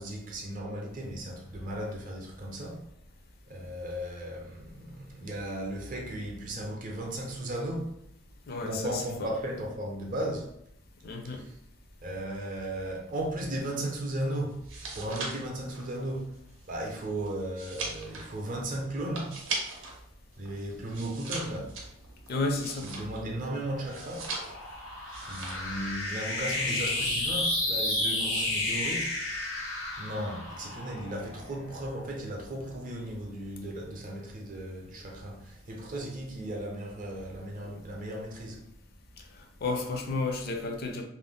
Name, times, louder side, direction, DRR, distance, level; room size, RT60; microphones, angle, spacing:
voice 1, 0.0-2.8 3.5-7.9 8.6-10.5 11.2-11.5 12.0-14.6 14.9-16.3 16.7-19.4 20.4-21.7 22.8-24.3 25.3-29.2 30.0-38.6, right 1 dB, 45° right, 0.5 m, -36 dB
voice 2, 8.5-8.9 11.0-11.4 22.3-22.9 39.6-41.0, left 3 dB, 50° left, 0.4 m, -31 dB
sound 1, 14.5-20.0 20.3-23.4 23.8-24.7 25.1-25.8 26.0-26.4, right 3 dB, 80° right, 0.7 m, -39 dB
sound 2, 23.4-32.1, left 2 dB, 90° left, 1.1 m, -32 dB
2.5 x 2.0 x 3.4 m
head